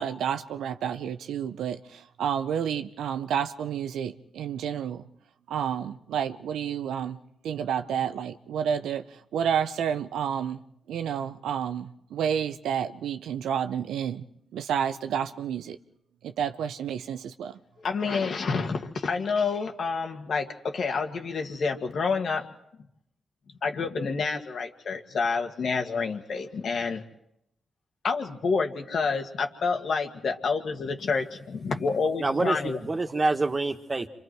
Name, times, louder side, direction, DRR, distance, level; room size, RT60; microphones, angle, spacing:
voice 1, 0.0-5.1 5.5-7.2 7.4-10.6 10.9-14.3 14.5-15.8 16.2-17.6, right 8 dB, 85° right, 0.8 m, -30 dB
voice 2, 17.8-22.5 23.6-27.0 28.0-32.8, left 4 dB, 65° left, 2.2 m, -28 dB
voice 3, 32.2-34.1, right 3 dB, 35° right, 1.9 m, -26 dB
28.5 x 25.5 x 4.7 m
supercardioid pair, 50°, 0 cm